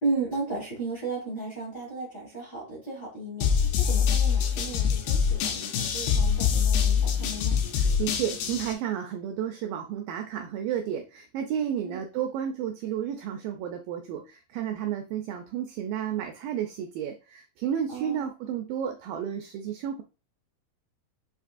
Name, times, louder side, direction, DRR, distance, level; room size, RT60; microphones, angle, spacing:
voice 1, 0.0-7.6 11.8-12.0 17.9-18.3, right 3 dB, 60° left, -5 dB, 1.0 m, -34 dB
sound 1, 3.4-8.7, left 7 dB, 80° left, 2.7 m, -24 dB
voice 2, 7.8-20.0, right 9 dB, 85° right, 4 dB, 2.0 m, -32 dB
7.3 x 2.9 x 2.5 m, 0.33 s
omnidirectional pair, 4.6 m